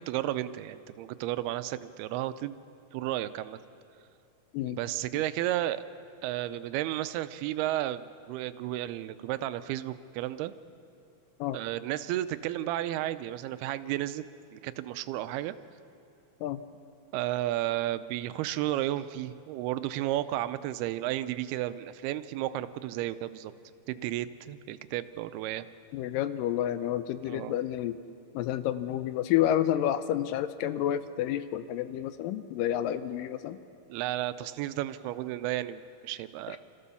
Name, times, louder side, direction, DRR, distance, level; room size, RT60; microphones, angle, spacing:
voice 1, 0.0-2.6 2.9-3.6 4.6-5.8 6.2-10.5 11.5-14.2 14.5-15.6 17.1-23.5 23.9-25.7 27.3-27.6 33.9-36.6, right 14 dB, 90° right, 13 dB, 2.6 m, -33 dB
voice 2, 25.9-28.0 28.3-33.6 36.5-36.6, left 11 dB, 80° left, 12 dB, 2.1 m, -29 dB
27.5 x 14.5 x 7.0 m, 2.5 s
omnidirectional pair, 4.4 m